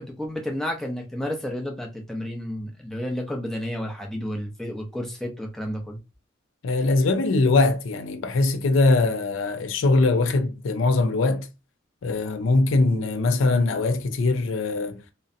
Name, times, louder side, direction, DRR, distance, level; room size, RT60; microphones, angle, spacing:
voice 1, 0.0-6.0, equal, ahead, 0.5 m, -31 dB
voice 2, 6.6-11.5 12.0-15.0, left 3 dB, 85° left, 0.4 m, -22 dB
2.6 x 2.0 x 2.5 m
head